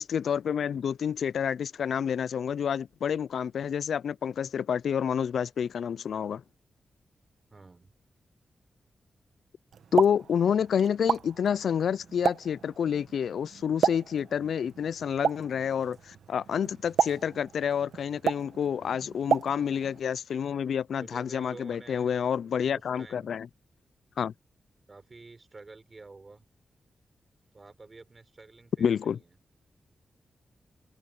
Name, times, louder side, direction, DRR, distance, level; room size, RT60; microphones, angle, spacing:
voice 1, 0.0-6.4 9.9-23.5 24.2-24.3 28.8-29.2, left 8 dB, 85° left, 0.3 m, -28 dB
voice 2, 7.5-7.9 14.4-14.5 18.8-19.1 21.0-22.1 22.7-23.4 24.9-26.4 27.5-29.3, right 3 dB, 30° right, 6.3 m, -50 dB
Explosion, 9.7-20.0, right 7 dB, 90° right, 1.4 m, -33 dB
wide cardioid pair, 120°, 0 cm